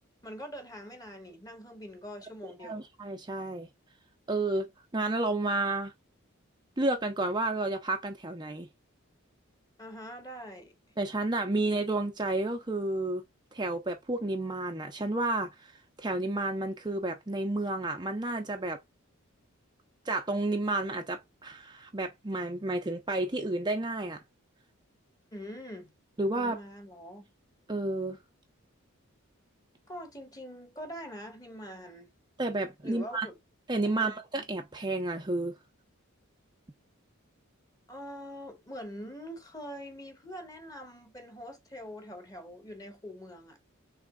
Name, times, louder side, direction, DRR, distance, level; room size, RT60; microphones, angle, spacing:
voice 1, 0.2-2.8 9.8-10.7 25.3-25.9 26.3-27.3 29.9-32.1 32.8-33.4 33.8-34.1 37.9-43.6, equal, 20° left, 1.5 m, -44 dB
voice 2, 2.4-3.7 4.3-5.9 6.8-8.7 11.0-13.2 13.5-15.7 16.0-18.8 20.0-24.2 26.2-26.6 27.7-28.2 32.4-33.3 33.7-35.6, right 2 dB, 20° right, 0.7 m, -31 dB
6.3 x 3.5 x 2.3 m
head